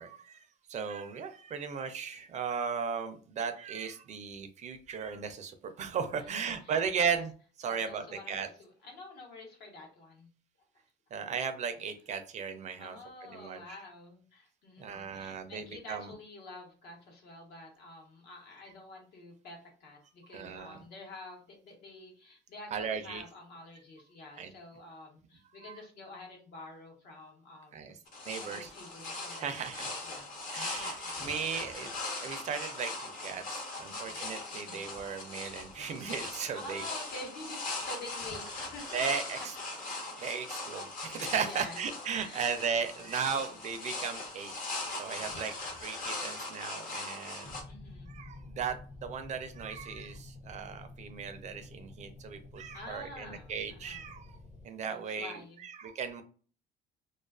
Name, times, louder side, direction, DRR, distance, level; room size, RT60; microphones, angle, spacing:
voice 1, 0.0-7.3 7.6-8.5 11.1-13.6 14.8-16.1 20.3-20.8 22.7-23.2 24.4-24.5 27.7-27.9 28.3-28.7 29.4-29.9 30.5-31.9 32.2-36.8 38.9-39.5 40.2-44.5 45.0-45.5 45.8-47.6 48.1-54.4 54.6-56.2, right 6 dB, 45° right, 8 dB, 0.4 m, -36 dB
voice 2, 6.2-7.2 7.7-10.3 12.8-30.3 30.6-31.2 33.8-34.8 36.5-39.0 39.4-39.8 41.4-41.8 42.2-42.5 42.9-43.0 45.1-45.6 47.7-48.2 52.7-54.1 54.9-55.6, left 2 dB, 75° left, 0 dB, 1.0 m, -49 dB
sound 1, 28.1-47.6, left 2 dB, 55° left, 0.8 m, -40 dB
sound 2, 47.4-54.7, left 2 dB, 25° left, 0.4 m, -50 dB
2.3 x 2.3 x 2.3 m, 0.40 s
cardioid pair, 110°, 17 cm